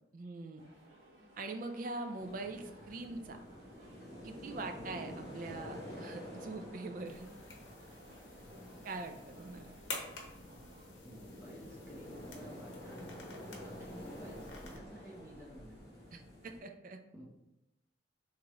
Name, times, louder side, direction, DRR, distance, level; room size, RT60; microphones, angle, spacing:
voice 1, 0.1-0.6 1.4-3.4 4.2-7.3 8.8-9.7 16.1-17.0, right 3 dB, 45° right, 6 dB, 0.4 m, -43 dB
sound 1, 0.6-11.0, right 1 dB, 75° right, 1.2 m, -60 dB
sound 2, 2.2-16.6, left 1 dB, 20° left, 1.1 m, -49 dB
sound 3, 7.0-14.8, left 3 dB, 65° left, 0.8 m, -50 dB
voice 2, 11.0-13.3 13.6-15.9 17.1-17.2, right 1 dB, 15° right, -5 dB, 0.8 m, -53 dB
3.5 x 3.0 x 2.9 m, 0.91 s
head